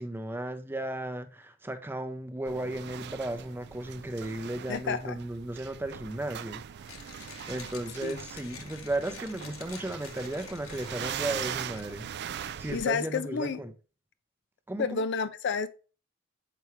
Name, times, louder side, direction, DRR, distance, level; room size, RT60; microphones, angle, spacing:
voice 1, 0.0-6.6 7.5-12.1 12.6-13.7 14.7-15.0, right 1 dB, 10° right, 0.6 m, -35 dB
sound 1, 2.5-12.9, right 9 dB, 50° right, 0.3 m, -41 dB
voice 2, 4.7-5.2 8.0-8.2 12.7-13.6 14.8-15.7, left 5 dB, 55° left, 0.5 m, -30 dB
Mechanisms, 6.8-12.1, left 6 dB, 80° left, 1.1 m, -48 dB
6.9 x 4.7 x 3.1 m
head